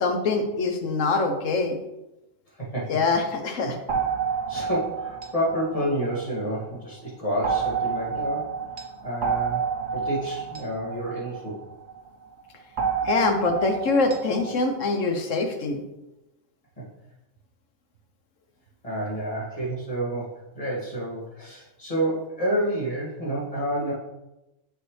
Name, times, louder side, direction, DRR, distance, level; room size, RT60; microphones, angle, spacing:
voice 1, 0.0-1.8 2.9-3.8 13.0-15.8, left 3 dB, 75° left, 5 dB, 1.2 m, -24 dB
voice 2, 2.6-3.0 3.6-3.7 4.5-8.5 9.0-9.6 9.9-11.6 16.8-16.9 18.8-23.9, right 1 dB, 25° left, -6 dB, 2.2 m, -29 dB
sound 1, 3.9-6.7 7.4-12.0 12.8-14.6, right 6 dB, 45° right, 0.8 m, -29 dB
6.7 x 6.2 x 3.3 m, 0.95 s
omnidirectional pair, 1.4 m